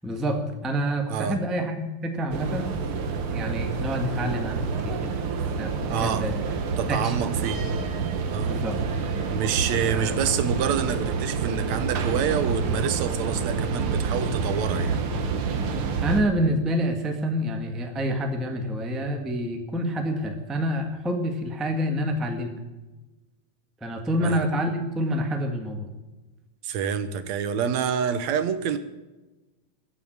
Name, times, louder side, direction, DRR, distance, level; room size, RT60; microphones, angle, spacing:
voice 1, 0.0-2.8 3.3-5.1 5.6-6.4 6.9-7.2 8.4-8.8 9.9-10.2 16.0-22.6 23.8-25.9, equal, ahead, 4 dB, 0.9 m, -27 dB
sound 1, 2.3-16.2, right 5 dB, 55° right, 1.9 m, -28 dB
voice 2, 5.9-6.3 6.8-7.6 8.3-8.6 9.3-15.0 24.2-24.4 26.6-28.8, right 7 dB, 75° right, 11 dB, 2.2 m, -27 dB
15.0 x 7.2 x 9.5 m, 1.1 s
omnidirectional pair, 3.3 m